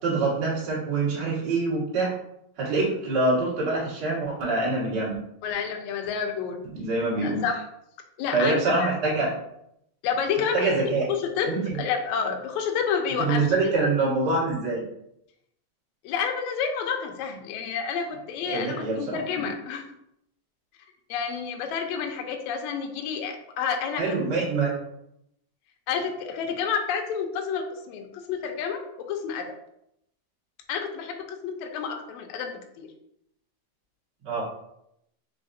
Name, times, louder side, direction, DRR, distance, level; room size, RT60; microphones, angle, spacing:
voice 1, 0.0-2.1 2.6-5.2 6.7-7.4 8.3-9.3 10.5-11.0 11.4-11.8 13.2-14.8 18.5-19.2 24.0-24.7 34.2-34.4, right 3 dB, 45° right, -6 dB, 1.4 m, -25 dB
voice 2, 5.4-6.6 7.2-7.6 8.2-9.3 10.0-11.5 11.8-13.4 16.0-19.9 21.1-24.2 25.9-29.5 30.7-32.9, left 6 dB, 90° left, 3 dB, 1.6 m, -29 dB
4.8 x 3.4 x 2.6 m, 0.76 s
omnidirectional pair, 4.0 m